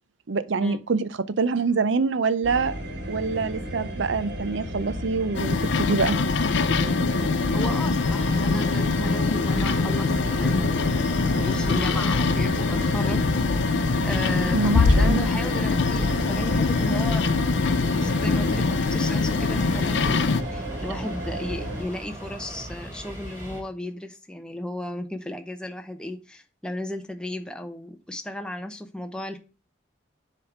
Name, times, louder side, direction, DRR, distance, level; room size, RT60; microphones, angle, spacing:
voice 1, 0.3-1.1 1.4-2.7 3.1-6.2 14.5-15.3, right 4 dB, 70° right, 0.6 m, -25 dB
sound 1, 2.4-21.8, equal, 55° right, 2.0 m, -33 dB
sound 2, 5.3-20.4, left 4 dB, 65° left, 0.5 m, -23 dB
voice 2, 7.5-11.1 11.4-13.3 14.0-17.2 17.9-29.4, left 1 dB, 5° left, 0.6 m, -35 dB
sound 3, 8.0-23.6, equal, 15° right, 1.9 m, -38 dB
7.2 x 3.4 x 5.9 m
head